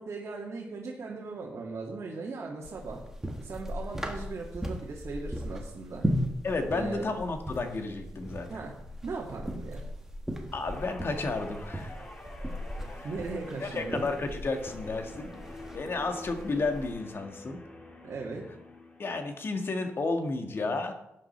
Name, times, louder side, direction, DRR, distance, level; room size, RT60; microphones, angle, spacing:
voice 1, 0.0-3.0 3.4-6.0 6.7-7.2 8.5-8.7 9.0-9.8 13.0-14.1 18.0-18.4, right 3 dB, 55° right, -3 dB, 2.1 m, -38 dB
sound 1, 2.6-17.0, equal, 10° right, 1.7 m, -37 dB
voice 2, 6.4-8.6 10.5-12.0 12.9-13.1 13.6-17.6 19.0-20.9, left 3 dB, 50° left, 5 dB, 1.7 m, -32 dB
Guitar, 10.7-19.3 19.6-20.0, left 2 dB, 25° left, 2.1 m, -47 dB
11.5 x 8.7 x 4.4 m, 0.84 s
cardioid pair, 90°, 5 cm